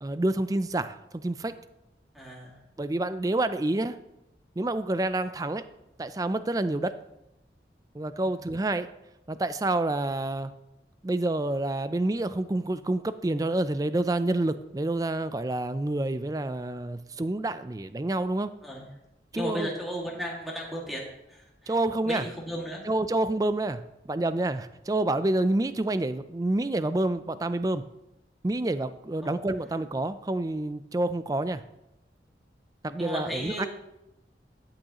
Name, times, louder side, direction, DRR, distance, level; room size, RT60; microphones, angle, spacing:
voice 1, 0.0-1.5 2.8-3.9 4.6-5.6 6.0-6.9 7.9-8.9 9.3-10.5 11.0-18.5 19.3-19.7 21.7-22.2 22.9-23.8 24.1-27.8 28.4-31.6 32.8-33.7, right 2 dB, 20° right, 12 dB, 0.4 m, -28 dB
voice 2, 2.1-2.6 8.2-8.4 18.6-18.9 19.3-21.8 22.0-22.8 29.2-29.3 33.0-33.7, equal, ahead, -4 dB, 2.1 m, -35 dB
13.0 x 8.8 x 3.0 m, 0.89 s
head